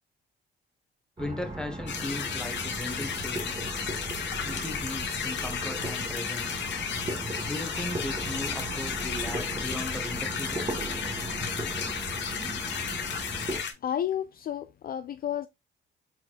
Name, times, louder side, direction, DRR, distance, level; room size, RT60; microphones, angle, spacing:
voice 1, 1.2-3.7 4.4-6.6 7.5-10.7, left 1 dB, 5° left, 1.3 m, -37 dB
sound 1, 1.2-13.6, right 2 dB, 25° right, 1.8 m, -37 dB
sound 2, 1.9-13.7, left 7 dB, 65° left, 1.0 m, -33 dB
voice 2, 13.8-15.5, left 10 dB, 50° left, 0.4 m, -31 dB
4.4 x 4.2 x 2.5 m
cardioid pair, 90°, 20 cm